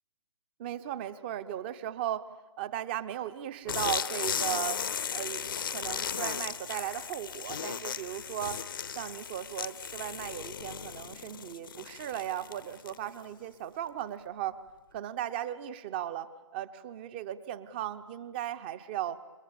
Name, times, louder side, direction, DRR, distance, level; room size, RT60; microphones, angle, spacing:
voice 1, 0.6-2.3 2.6-4.8 5.1-8.6 8.9-14.6 14.9-19.2, right 11 dB, 20° right, 14 dB, 0.8 m, -37 dB
sound 1, 3.7-13.2, left 7 dB, 45° left, 0.8 m, -36 dB
28.5 x 23.5 x 7.0 m, 1.2 s
figure-of-eight pair, 140°, 15 cm